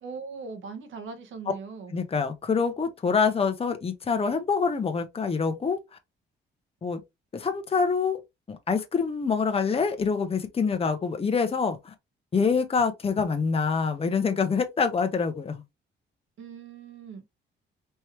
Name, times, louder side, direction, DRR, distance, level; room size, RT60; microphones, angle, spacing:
voice 1, 0.0-1.9 16.4-17.3, right 4 dB, 75° right, 1.4 m, -40 dB
voice 2, 1.9-5.8 6.8-7.0 7.3-8.2 8.5-11.9 12.3-15.6, left 5 dB, 30° left, 0.9 m, -26 dB
4.5 x 3.1 x 3.2 m
cardioid pair, 90°, 20 cm